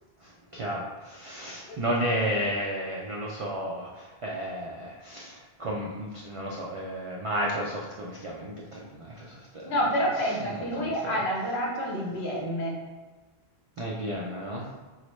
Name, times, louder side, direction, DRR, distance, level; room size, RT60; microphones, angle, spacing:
voice 1, 0.5-9.6 10.2-11.2 13.8-14.7, equal, 65° right, -3 dB, 0.3 m, -33 dB
voice 2, 9.6-12.7, equal, 70° left, -2 dB, 1.0 m, -28 dB
3.9 x 2.1 x 3.0 m, 1.3 s
omnidirectional pair, 1.1 m